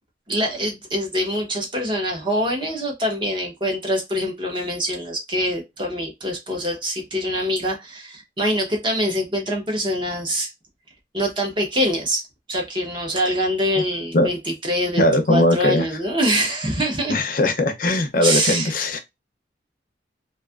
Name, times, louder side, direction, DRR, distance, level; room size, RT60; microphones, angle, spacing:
voice 1, 0.3-10.5 11.1-12.2 12.5-17.2 18.2-18.7, equal, 25° right, 0.8 m, -24 dB
voice 2, 15.0-15.9 17.1-19.0, left 1 dB, 50° left, 0.5 m, -19 dB
2.5 x 2.4 x 2.3 m
head